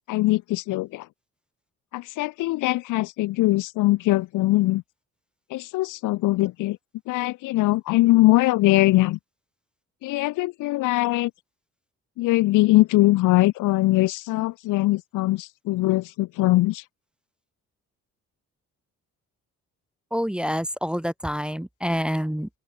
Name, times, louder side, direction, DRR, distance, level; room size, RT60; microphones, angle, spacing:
voice 1, 0.1-1.1 1.9-4.8 5.5-6.8 7.1-9.2 10.0-11.3 12.2-16.8, left 18 dB, 90° left, 0.8 m, -21 dB
voice 2, 20.1-22.5, equal, 5° right, 0.6 m, -27 dB
open air
cardioid pair, 90°, 30 cm